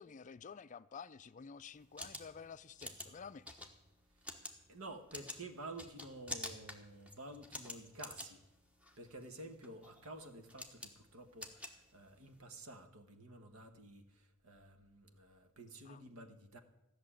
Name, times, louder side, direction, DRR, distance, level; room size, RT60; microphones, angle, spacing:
voice 1, 0.0-3.7 15.9-16.0, left 6 dB, 35° left, 0.4 m, -51 dB
sound 1, 1.7-12.4, left 1 dB, 5° right, 1.2 m, -49 dB
voice 2, 4.7-8.4 9.0-16.6, right 2 dB, 70° right, 1.4 m, -51 dB
14.5 x 6.6 x 10.0 m
head